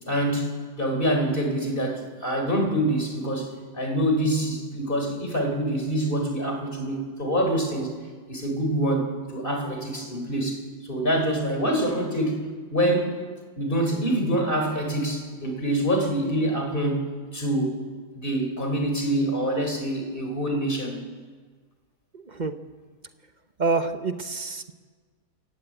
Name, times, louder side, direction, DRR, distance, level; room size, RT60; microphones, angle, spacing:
voice 1, 0.1-0.5 0.8-3.5 3.7-7.9 8.3-12.4 12.7-13.1 13.6-17.1 17.3-17.8 18.1-21.0, right 1 dB, 30° left, 3 dB, 4.5 m, -25 dB
voice 2, 22.1-22.5 23.6-24.7, right 3 dB, 30° right, 8 dB, 1.0 m, -27 dB
29.0 x 15.5 x 9.0 m, 1.5 s
omnidirectional pair, 1.7 m